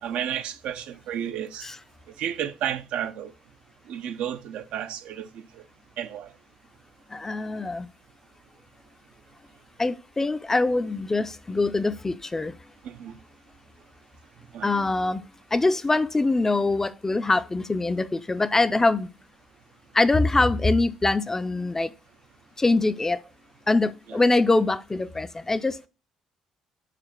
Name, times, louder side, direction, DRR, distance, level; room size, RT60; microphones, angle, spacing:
voice 1, 0.0-1.7 2.2-3.3 3.9-5.6 6.0-6.3 12.8-13.2 14.5-14.7 24.1-24.2, right 9 dB, 70° right, 0.6 m, -32 dB
voice 2, 7.1-7.9 9.8-12.5 14.6-15.2 15.5-19.1 19.9-21.9 22.6-23.2 23.7-25.8, left 2 dB, 20° left, 0.5 m, -23 dB
5.0 x 4.4 x 5.7 m
hypercardioid pair, 60°, 2 cm